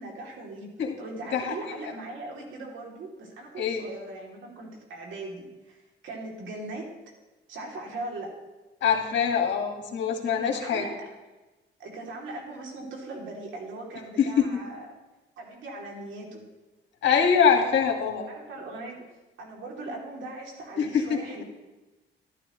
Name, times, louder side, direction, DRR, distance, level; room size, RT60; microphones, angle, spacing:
voice 1, 0.0-0.7 1.0-6.9 7.5-8.3 10.4-11.1 11.8-14.9 15.4-16.4 18.3-21.4, right 2 dB, 75° right, -1 dB, 2.8 m, -39 dB
voice 2, 8.8-10.9 14.2-14.4 17.0-18.3 20.8-21.4, left 7 dB, 65° left, 2 dB, 1.8 m, -24 dB
12.0 x 12.0 x 3.1 m, 1.1 s
cardioid pair, 90°, 20 cm